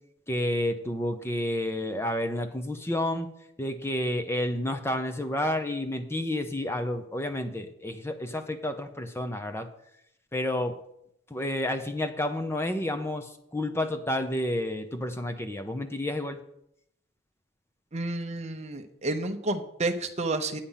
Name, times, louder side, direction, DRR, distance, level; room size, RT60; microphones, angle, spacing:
voice 1, 0.3-3.3 3.6-9.7 10.3-10.7 11.3-16.4, left 1 dB, 10° left, 8 dB, 0.6 m, -30 dB
voice 2, 17.9-20.6, right 2 dB, 30° right, 5 dB, 0.8 m, -30 dB
8.7 x 8.4 x 5.6 m, 0.76 s
head